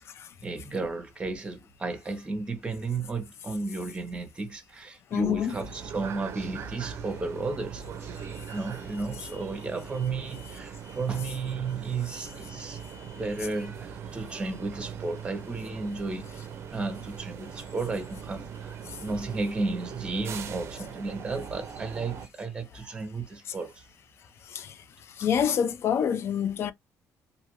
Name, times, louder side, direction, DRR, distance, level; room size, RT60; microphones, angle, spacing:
voice 1, 0.4-8.2 8.5-12.8 13.1-23.9, right 3 dB, 15° right, 0.8 m, -33 dB
voice 2, 5.1-5.5 24.5-24.7 25.2-26.7, left 8 dB, 45° left, 0.4 m, -26 dB
sound 1, 5.5-22.3, right 7 dB, 45° right, 0.5 m, -41 dB
2.6 x 2.4 x 2.9 m
cardioid pair, 150°, 6 cm